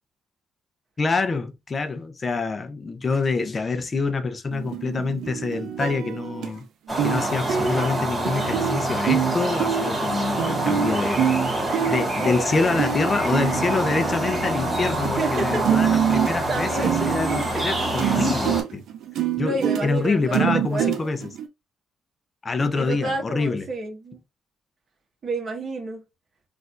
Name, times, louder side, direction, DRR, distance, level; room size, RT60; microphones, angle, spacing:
voice 1, 1.0-6.6 7.0-11.2 11.9-18.8 19.4-21.3 22.4-23.7, left 4 dB, 35° left, 0.6 m, -26 dB
sound 1, 4.5-6.6 7.0-7.2 7.5-15.1 15.4-21.5, right 9 dB, 75° right, 0.5 m, -26 dB
sound 2, 6.9-18.6, right 1 dB, 5° right, 2.1 m, -26 dB
voice 2, 12.2-12.8 15.2-16.1 16.5-17.0 17.5-17.6 19.4-21.2 22.7-24.2 25.2-26.0, right 2 dB, 45° right, 1.2 m, -30 dB
4.3 x 2.6 x 2.5 m
cardioid pair, 90°, 0 cm